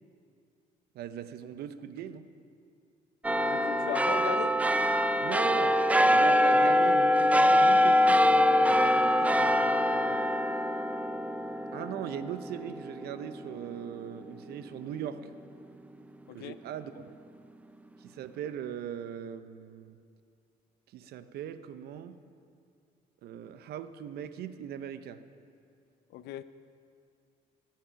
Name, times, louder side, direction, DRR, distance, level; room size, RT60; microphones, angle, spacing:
voice 1, 0.9-2.3 5.2-5.8 6.1-10.2 11.7-15.3 16.3-17.2 18.0-20.0 20.9-22.2 23.2-25.2, right 9 dB, 70° right, 12 dB, 0.7 m, -40 dB
sound 1, 3.2-14.0 14.4-14.5, left 1 dB, 10° right, 0.4 m, -24 dB
voice 2, 3.5-4.6 16.3-16.5 26.1-26.4, left 12 dB, 75° left, 13 dB, 0.5 m, -37 dB
18.5 x 7.6 x 5.8 m, 2.4 s
cardioid pair, 110°, 17 cm